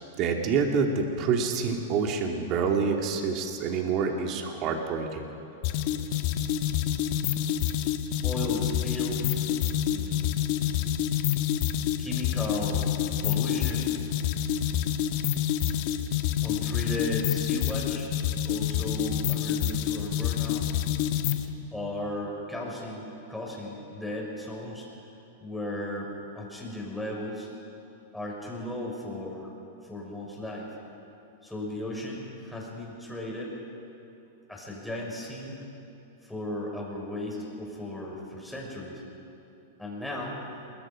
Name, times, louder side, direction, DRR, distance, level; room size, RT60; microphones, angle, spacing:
voice 1, 0.2-5.3, right 5 dB, 40° right, 2 dB, 2.7 m, -27 dB
sound 1, 5.6-21.5, left 10 dB, 50° left, 1.5 m, -27 dB
voice 2, 8.2-9.5 9.8-10.4 12.0-12.9 13.2-14.1 16.4-18.1 18.4-20.7 21.7-24.9 25.4-26.1 26.3-27.5 28.1-29.5 29.8-30.7 31.4-33.5 34.5-35.6 36.2-39.0 39.8-40.4, left 1 dB, 5° left, -3 dB, 5.7 m, -36 dB
27.5 x 22.0 x 5.2 m, 3.0 s
hypercardioid pair, 135°, 0 cm